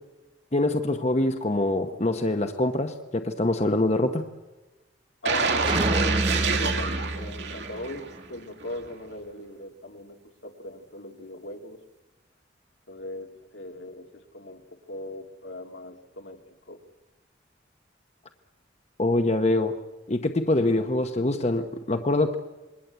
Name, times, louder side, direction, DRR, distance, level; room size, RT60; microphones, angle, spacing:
voice 1, 0.5-4.2 19.0-19.7 20.1-22.4, left 2 dB, 35° left, 6 dB, 1.0 m, -24 dB
voice 2, 5.2-10.2 10.4-11.8 12.9-16.4 16.7-16.8, left 1 dB, 80° left, 3 dB, 2.6 m, -39 dB
sound 1, 5.2-8.2 8.6-8.8, right 4 dB, 65° right, 2.7 m, -26 dB
sound 2, 5.7-8.2, right 1 dB, 25° right, 0.8 m, -31 dB
27.0 x 21.5 x 8.2 m, 1.1 s
head